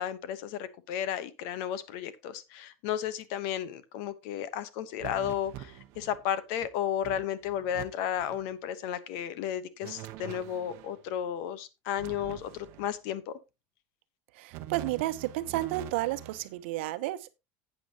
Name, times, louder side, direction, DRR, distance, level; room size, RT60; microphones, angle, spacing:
voice 1, 0.0-13.3, left 10 dB, 55° left, 1.0 m, -33 dB
sound 1, 5.0-6.2 6.6-6.7 7.0-7.8 8.1-8.4 9.8-11.0 12.0-13.0 14.5-16.5, right 13 dB, 45° right, 0.9 m, -44 dB
voice 2, 14.3-17.3, right 16 dB, 75° right, 0.9 m, -32 dB
12.0 x 8.5 x 2.9 m
cardioid pair, 175°, 6 cm